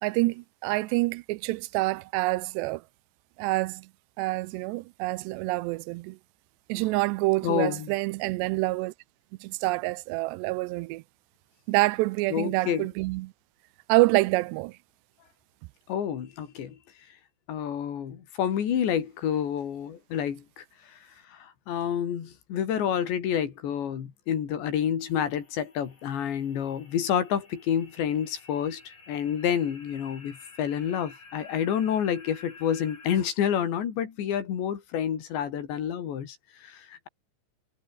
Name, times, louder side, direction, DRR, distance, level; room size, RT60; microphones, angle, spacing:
voice 1, 0.0-2.8 3.4-3.9 4.2-6.2 6.7-8.9 9.4-11.0 11.7-13.3 13.9-14.8, right 21 dB, 85° right, 2.7 m, -27 dB
voice 2, 7.4-7.9 12.3-12.9 15.9-16.8 17.5-21.0 21.3-37.1, left 9 dB, 80° left, 5.3 m, -29 dB
sound 1, 25.0-33.2, left 4 dB, 45° left, 8.2 m, -52 dB
omnidirectional pair, 5.0 m